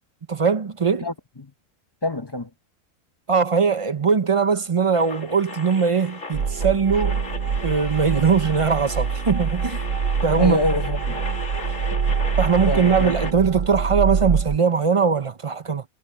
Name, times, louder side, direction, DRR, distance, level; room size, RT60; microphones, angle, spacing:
voice 1, 0.3-1.1 3.3-7.2 7.6-9.9 10.2-10.6 12.4-15.8, right 5 dB, 35° right, 0.6 m, -20 dB
voice 2, 1.0-1.5 2.0-2.5 10.4-11.2 12.7-13.1, left 2 dB, 20° left, 0.9 m, -26 dB
sound 1, 4.9-13.3, left 3 dB, 65° left, 2.4 m, -36 dB
sound 2, 6.3-14.6, right 6 dB, 60° right, 1.3 m, -25 dB
omnidirectional pair, 1.4 m